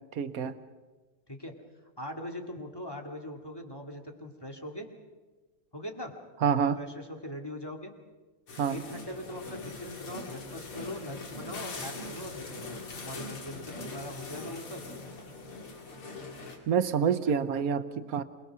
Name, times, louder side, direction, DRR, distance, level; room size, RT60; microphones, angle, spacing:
voice 1, 0.1-0.6 6.4-6.8 8.6-8.8 16.7-18.2, right 7 dB, 60° right, 12 dB, 1.0 m, -27 dB
voice 2, 2.0-4.9 5.7-6.1 6.8-7.9 8.7-14.8, left 1 dB, 10° left, 3 dB, 2.1 m, -41 dB
sound 1, 8.5-16.6, left 3 dB, 90° left, 3.5 m, -41 dB
27.5 x 20.5 x 6.2 m, 1.3 s
omnidirectional pair, 2.3 m